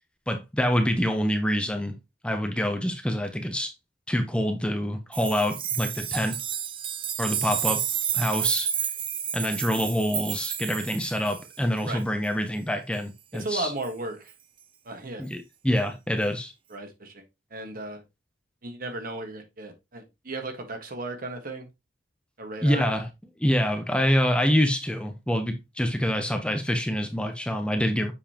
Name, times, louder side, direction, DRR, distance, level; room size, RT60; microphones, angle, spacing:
voice 1, 0.3-1.9 2.2-3.7 4.1-6.4 7.2-7.8 8.1-8.7 9.3-13.7 15.2-16.5 22.6-23.1 23.4-28.1, equal, 5° left, 0.8 m, -26 dB
sound 1, 5.1-11.6 13.8-13.9, right 9 dB, 30° right, 0.5 m, -30 dB
voice 2, 13.3-14.3 14.8-15.3 16.7-17.2 17.5-18.0 18.6-21.7 22.4-22.9, right 2 dB, 55° right, 1.5 m, -35 dB
7.1 x 5.3 x 2.9 m
head